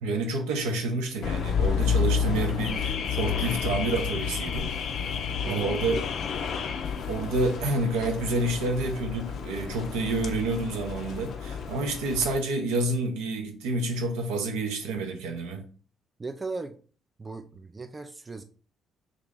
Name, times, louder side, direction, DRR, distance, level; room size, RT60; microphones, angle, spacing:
voice 1, 0.0-4.7 5.4-6.0 7.1-15.6, right 2 dB, 70° right, 0.6 m, -29 dB
Car / Alarm, 1.2-12.4, left 7 dB, 55° left, 0.4 m, -30 dB
voice 2, 5.4-5.8 16.2-16.8 17.2-18.4, right 3 dB, 30° right, 0.3 m, -37 dB
2.8 x 2.5 x 3.4 m
figure-of-eight pair, 45°, 0 cm